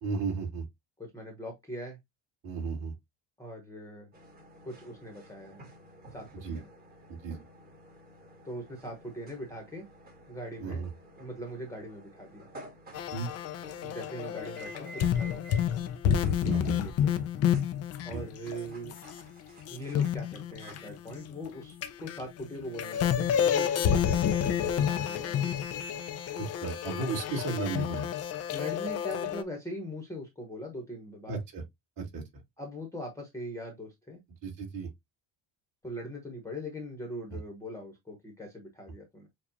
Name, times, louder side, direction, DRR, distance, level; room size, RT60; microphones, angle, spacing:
voice 1, 0.0-0.7 2.4-2.9 6.3-6.6 7.1-7.4 10.6-10.9 13.1-13.3 16.4-16.9 18.1-18.2 26.4-28.1 31.3-31.6 32.0-32.2 34.4-34.9 37.3-37.4, right 4 dB, 45° right, 2.3 m, -34 dB
voice 2, 1.0-2.0 3.4-4.1 4.6-5.6 6.1-6.6 8.4-9.9 10.3-10.8 11.2-12.5 13.8-15.9 16.8-17.1 18.0-18.9 19.7-25.5 28.5-31.4 32.6-34.2 35.8-39.3, equal, 5° left, 1.0 m, -41 dB
sound 1, 4.1-23.0, right 2 dB, 20° right, 1.4 m, -53 dB
sound 2, 12.9-19.2 19.6-21.5 21.8-29.4, left 9 dB, 35° left, 0.4 m, -29 dB
6.9 x 2.4 x 2.8 m
cardioid pair, 165°, 48 cm